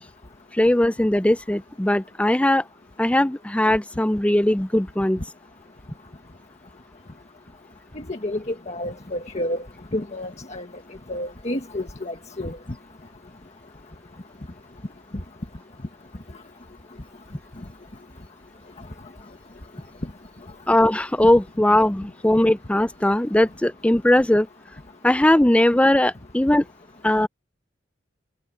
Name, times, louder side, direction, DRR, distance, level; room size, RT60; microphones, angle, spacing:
voice 1, 0.5-2.6 3.0-5.2 20.7-24.5 25.0-26.6 27.0-27.3, left 1 dB, 5° left, 0.5 m, -19 dB
voice 2, 8.1-9.6 9.9-10.7 11.1-12.6, left 1 dB, 35° left, 1.6 m, -30 dB
head